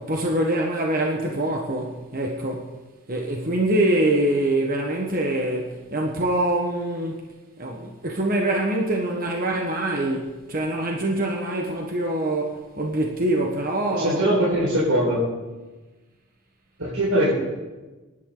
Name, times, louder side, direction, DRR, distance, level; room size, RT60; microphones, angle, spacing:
voice 1, 0.0-2.7 3.1-7.2 7.6-14.2, right 1 dB, 40° right, 0 dB, 1.3 m, -24 dB
voice 2, 14.0-15.2 16.8-17.3, right 1 dB, 85° right, -7 dB, 4.8 m, -21 dB
23.0 x 11.0 x 3.9 m, 1.2 s
head